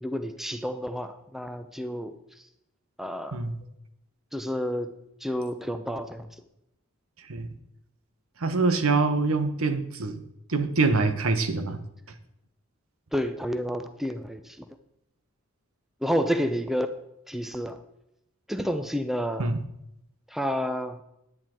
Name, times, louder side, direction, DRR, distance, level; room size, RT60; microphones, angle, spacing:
voice 1, 0.0-2.1 3.0-3.4 4.3-4.9 5.2-6.3 13.1-14.7 16.0-16.9 17.3-17.8 18.5-19.5 20.3-21.0, equal, ahead, 8 dB, 0.6 m, -30 dB
voice 2, 8.4-10.2 10.5-11.8 19.4-19.6, right 3 dB, 85° right, 8 dB, 1.2 m, -24 dB
10.5 x 10.0 x 4.5 m, 0.81 s
head